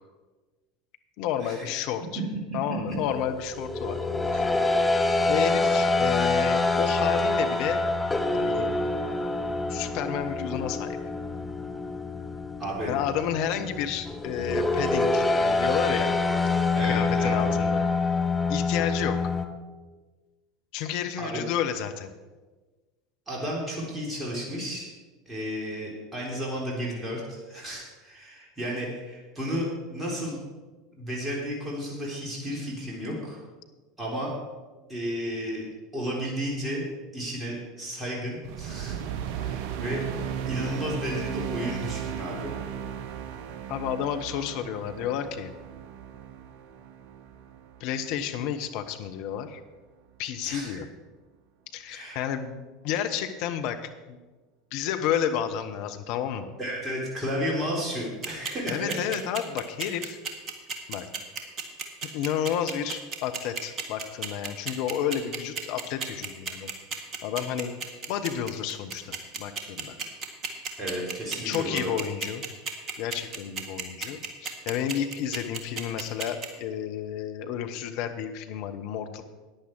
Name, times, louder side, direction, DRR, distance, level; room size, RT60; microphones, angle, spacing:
voice 1, 1.2-2.2 2.5-4.0 4.3-4.6 5.3-7.8 8.3-8.7 9.7-11.0 12.9-16.2 16.8-17.9 18.5-19.3 20.7-22.1 43.7-45.5 47.8-49.6 50.2-50.8 51.7-54.2 54.7-56.5 58.7-60.2 60.9-61.1 62.1-66.7 67.2-67.7 68.1-70.0 71.4-72.4 73.0-79.2, left 9 dB, 55° left, 7 dB, 1.0 m, -31 dB
sound 1, 3.0-19.5, left 3 dB, 10° left, 1.1 m, -26 dB
voice 2, 12.6-12.9 16.7-17.6 21.2-21.4 23.3-24.9 25.3-30.4 31.0-33.4 34.0-34.3 34.9-35.7 35.9-36.9 37.1-39.0 39.3-40.0 40.5-42.5 50.4-50.8 51.9-52.2 56.6-58.9 70.8-71.9, equal, 20° right, -3 dB, 3.7 m, -33 dB
Mechanical Synth Swell, 38.4-48.9, right 9 dB, 55° right, 0.7 m, -36 dB
sound 2, 58.2-76.5, right 5 dB, 35° right, 1.8 m, -33 dB
14.5 x 10.0 x 4.7 m, 1.3 s
figure-of-eight pair, 75°, 0 cm